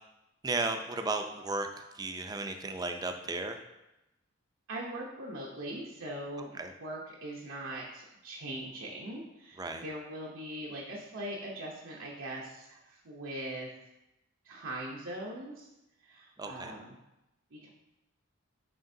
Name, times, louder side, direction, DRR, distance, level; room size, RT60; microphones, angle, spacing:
voice 1, 0.4-3.6 6.6-6.7 9.6-9.8 16.4-16.7, right 3 dB, 20° right, 6 dB, 0.5 m, -34 dB
voice 2, 4.7-13.7 14.4-15.7 16.0-16.9 17.5-17.7, right 1 dB, 80° right, -3 dB, 0.8 m, -41 dB
7.7 x 5.0 x 2.7 m, 0.94 s
head